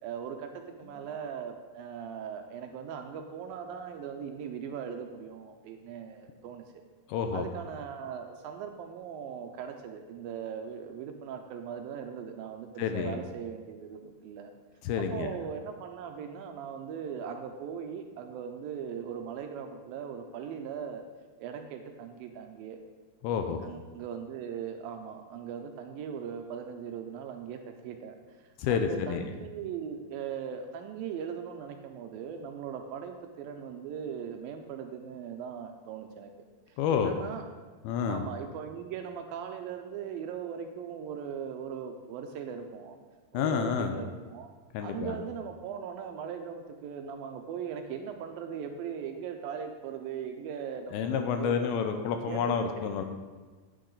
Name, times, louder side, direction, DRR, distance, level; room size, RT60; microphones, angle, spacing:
voice 1, 0.0-6.6 7.3-14.5 15.0-21.0 21.4-22.8 23.6-28.2 28.7-36.3 36.7-37.5 38.1-43.0 43.3-44.5 44.8-52.0 52.3-53.0, right 7 dB, 80° right, 5 dB, 2.2 m, -39 dB
voice 2, 7.1-7.5 12.8-13.2 14.8-15.3 23.2-23.6 28.6-29.2 36.8-37.1 37.8-38.2 43.3-44.0 44.7-45.2 50.9-53.0, left 7 dB, 85° left, 6 dB, 2.5 m, -29 dB
9.4 x 8.8 x 3.9 m, 1.4 s
omnidirectional pair, 4.4 m